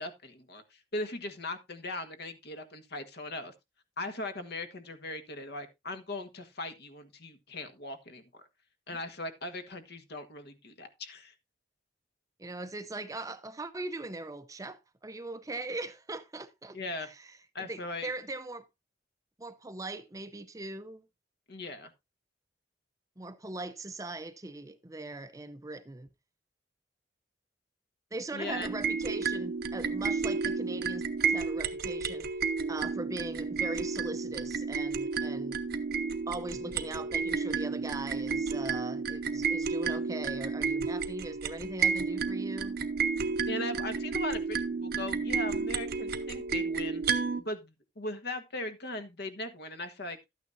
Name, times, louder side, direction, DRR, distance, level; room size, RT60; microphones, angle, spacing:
voice 1, 0.0-3.5 4.0-8.2 8.9-11.3 16.7-17.1 17.5-18.1 21.5-21.9 28.3-28.7 43.5-47.0 47.4-50.2, left 2 dB, 60° left, 1.5 m, -39 dB
voice 2, 12.4-17.3 17.6-18.7 19.4-21.0 23.2-26.1 28.1-32.3 32.7-35.6 36.3-42.8, right 2 dB, 20° right, 0.6 m, -40 dB
sound 1, 28.5-47.4, right 5 dB, 55° right, 0.8 m, -31 dB
12.0 x 9.2 x 2.6 m
head